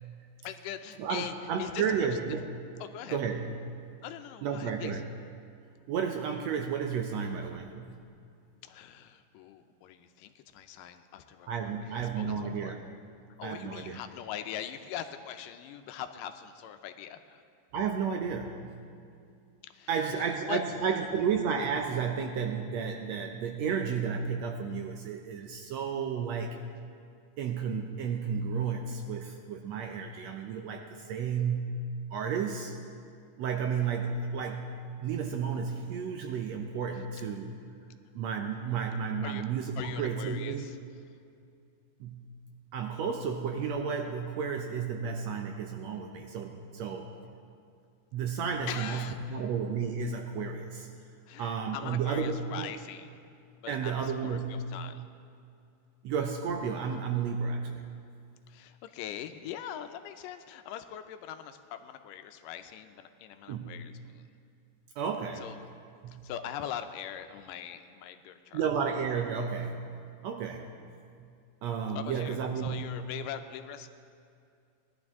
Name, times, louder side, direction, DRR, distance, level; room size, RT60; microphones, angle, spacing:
voice 1, 0.4-2.2 2.8-3.2 4.0-5.0 8.6-11.5 11.9-12.7 13.4-17.4 19.7-20.6 39.2-39.5 39.8-40.8 48.7-49.5 51.3-53.2 53.6-55.0 58.5-64.2 65.4-65.7 66.2-68.6 71.9-73.9, left 10 dB, 85° left, 8 dB, 2.2 m, -42 dB
voice 2, 1.0-2.5 3.1-3.5 4.4-5.0 5.9-8.0 11.5-12.8 13.4-14.0 17.7-18.8 19.9-26.6 27.4-31.8 32.1-32.8 33.4-34.7 35.0-37.5 38.1-40.7 42.0-42.2 42.7-47.1 48.1-50.9 51.4-52.7 53.7-54.7 56.0-57.8 63.5-63.8 65.0-65.5 66.0-66.2 68.5-69.8 70.2-70.7 71.2-71.3 71.6-73.0, right 6 dB, 80° right, 3 dB, 1.6 m, -32 dB
19.0 x 12.0 x 3.6 m, 2.4 s
omnidirectional pair, 3.8 m